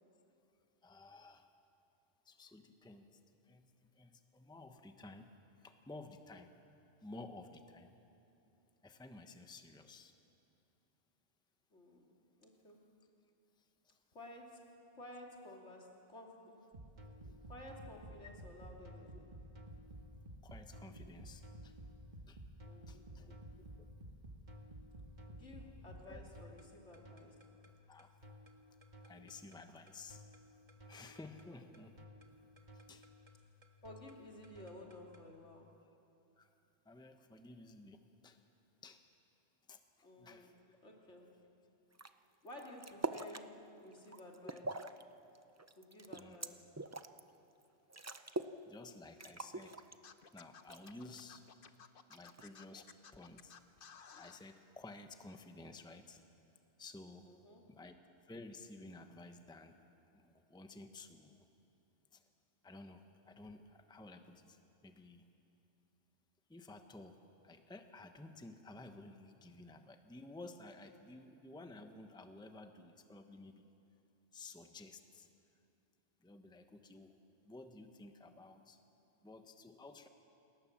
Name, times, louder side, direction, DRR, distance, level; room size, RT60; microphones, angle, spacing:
voice 1, 0.8-1.5 2.2-3.2 3.5-3.7 3.9-5.3 5.6-6.6 7.0-7.9 8.8-10.1 13.8-14.0 17.2-17.4 20.4-21.8 22.3-22.4 22.9-23.3 26.1-26.2 27.9-28.1 29.0-30.2 30.8-32.0 32.7-33.1 36.4-36.5 36.8-38.4 38.8-39.0 39.7-40.5 44.4-44.5 46.1-46.4 48.7-49.7 50.3-51.4 52.1-53.5 54.2-56.2 56.8-57.3 57.7-58.0 58.2-59.8 60.1-61.5 62.1-62.2 62.6-65.3 66.5-67.2 67.4-73.7 74.3-75.3 76.2-77.2 77.4-78.8 79.2-80.1, left 2 dB, 5° left, 6 dB, 1.0 m, -54 dB
voice 2, 11.7-12.1 12.4-12.8 14.1-16.6 17.5-19.3 22.6-23.4 25.3-27.4 31.4-31.6 33.8-35.8 40.0-40.6 40.8-41.3 42.4-44.7 45.8-46.7 57.3-57.7, left 1 dB, 75° left, 0 dB, 3.0 m, -54 dB
sound 1, 16.7-35.3, equal, 40° right, 1.7 m, -54 dB
sound 2, 41.9-42.1 42.5-43.5 43.9-45.0 45.3-47.2 47.6-47.7 47.9-48.6 48.9-49.0 49.2-50.3 50.7-51.2 52.1-52.6, right 2 dB, 20° right, 0.4 m, -43 dB
Scratching (performance technique), 50.0-54.4, left 6 dB, 50° left, 1.0 m, -56 dB
27.5 x 19.0 x 7.4 m, 2.8 s
omnidirectional pair, 1.2 m